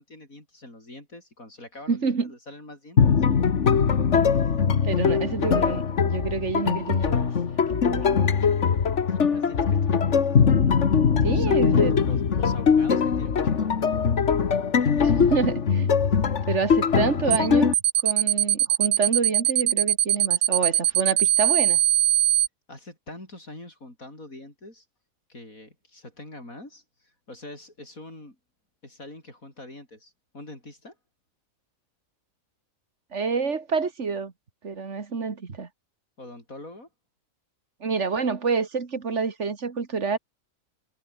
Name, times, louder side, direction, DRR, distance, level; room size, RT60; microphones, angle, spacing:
voice 1, 0.0-3.2 9.1-10.2 11.2-14.3 22.7-24.8 25.3-28.4 28.8-31.0 36.2-36.9, left 1 dB, 90° left, 8.3 m, -44 dB
voice 2, 1.9-2.3 4.8-7.3 7.7-8.2 11.2-11.9 12.9-13.0 15.0-16.0 16.5-17.7 18.0-21.8 33.1-34.3 34.6-35.7 37.8-40.2, right 5 dB, 60° right, 2.3 m, -28 dB
sound 1, 3.0-17.7, left 6 dB, 60° left, 1.7 m, -21 dB
sound 2, 17.3-17.5 17.7-22.5, right 11 dB, 85° right, 1.3 m, -21 dB
omnidirectional pair, 1.4 m